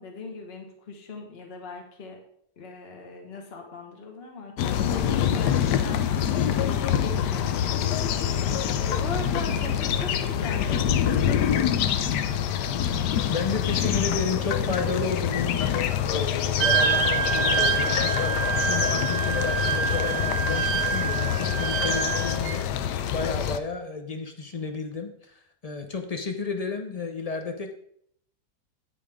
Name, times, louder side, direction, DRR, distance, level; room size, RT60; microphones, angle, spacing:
voice 1, 0.0-2.2 2.6-11.7, left 3 dB, 40° left, 2 dB, 1.5 m, -39 dB
sound 1, 4.6-23.6, left 9 dB, 80° left, 1.2 m, -26 dB
voice 2, 13.3-27.7, left 4 dB, 60° left, 6 dB, 0.4 m, -32 dB
Wind instrument woodwind instrument, 16.6-22.6, right 9 dB, 85° right, 1.3 m, -26 dB
9.0 x 8.5 x 3.6 m, 0.67 s
omnidirectional pair, 1.8 m